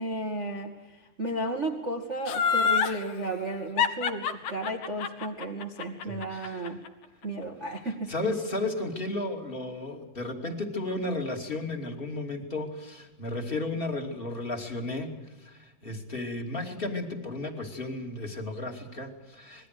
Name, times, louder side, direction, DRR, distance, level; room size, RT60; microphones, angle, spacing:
voice 1, 0.0-6.8 7.2-8.1, right 1 dB, 35° right, 3 dB, 1.1 m, -33 dB
Laughter, 2.3-3.0 3.8-6.9 7.2-7.3, left 6 dB, 60° left, 2.8 m, -26 dB
voice 2, 6.0-6.7 7.8-15.1 15.4-19.7, left 2 dB, 15° left, 3 dB, 2.2 m, -34 dB
26.5 x 21.0 x 6.7 m, 1.1 s
omnidirectional pair, 4.7 m